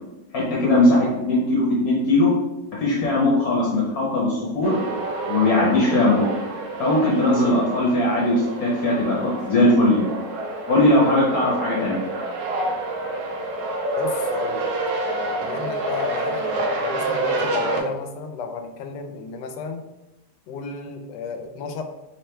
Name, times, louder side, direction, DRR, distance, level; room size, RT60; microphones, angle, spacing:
voice 1, 0.3-2.3 2.8-4.8 5.3-6.3 6.8-10.1 10.7-12.0, left 1 dB, 60° left, -4 dB, 1.3 m, -19 dB
sound 1, 4.6-17.8, right 2 dB, 90° right, 1.3 m, -28 dB
voice 2, 14.0-14.7 15.4-16.4 16.8-19.8 20.5-21.8, left 5 dB, 80° left, 5 dB, 1.2 m, -32 dB
3.5 x 3.3 x 4.3 m, 0.98 s
omnidirectional pair, 1.9 m